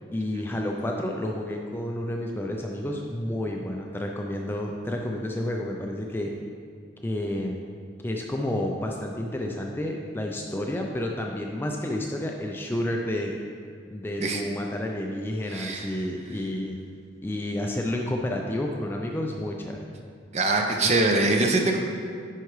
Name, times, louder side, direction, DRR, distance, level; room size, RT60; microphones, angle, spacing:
voice 1, 0.1-6.3 7.0-7.6 8.0-13.4 13.9-16.8 17.2-19.8, left 1 dB, 10° left, 0 dB, 0.3 m, -30 dB
voice 2, 15.5-15.9 20.3-21.8, right 2 dB, 35° right, 3 dB, 0.5 m, -23 dB
9.9 x 4.7 x 3.1 m, 2.2 s
head